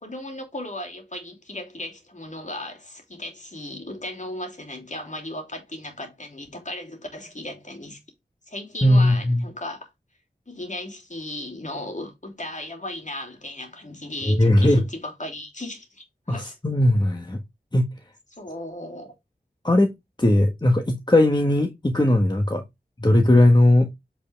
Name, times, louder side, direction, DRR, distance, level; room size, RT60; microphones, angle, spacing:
voice 1, 0.0-8.0 8.5-9.9 10.5-16.5 18.4-19.1, left 1 dB, 45° left, 3.0 m, -36 dB
voice 2, 8.8-9.4 14.2-14.8 16.3-17.4 17.7-17.9 19.6-19.9 20.2-22.6 23.0-23.9, left 1 dB, 25° left, 1.4 m, -18 dB
8.1 x 4.9 x 3.4 m
wide cardioid pair, 45°, 17 cm